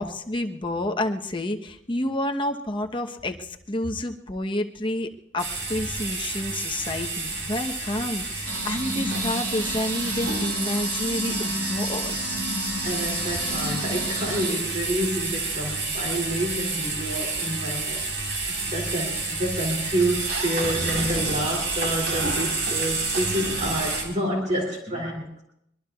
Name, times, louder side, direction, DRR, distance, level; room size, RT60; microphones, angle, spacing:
voice 1, 0.0-12.4, left 1 dB, 25° left, 3 dB, 1.0 m, -29 dB
sound 1, 5.4-24.0, right 3 dB, 75° right, 4.1 m, -29 dB
sound 2, 8.4-14.5, equal, 55° right, 7.4 m, -32 dB
voice 2, 12.8-25.4, right 1 dB, 40° right, -2 dB, 2.8 m, -29 dB
23.5 x 23.0 x 2.4 m, 0.76 s
head